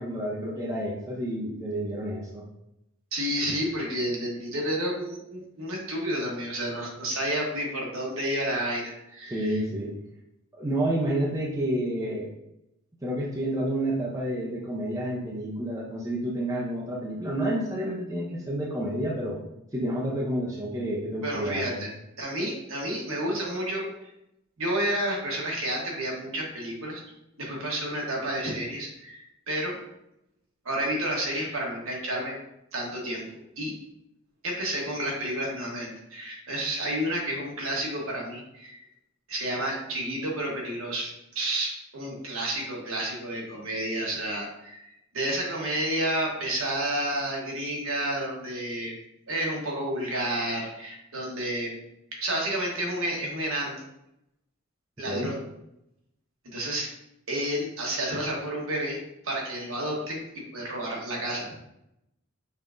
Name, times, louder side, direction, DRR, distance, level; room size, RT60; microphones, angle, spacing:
voice 1, 0.0-2.4 9.3-9.9 10.5-12.3 13.0-19.4 19.7-21.8 55.1-55.3, right 1 dB, 15° right, -4 dB, 0.6 m, -29 dB
voice 2, 3.1-9.6 21.2-21.9 22.2-24.1 24.6-27.0 27.4-29.8 30.6-32.3 32.7-33.7 34.4-38.8 39.3-48.9 49.3-51.7 52.1-53.8 55.0-55.4 56.4-56.9 57.3-61.5, right 1 dB, 65° right, -2 dB, 1.2 m, -30 dB
5.4 x 3.5 x 2.6 m, 0.84 s
head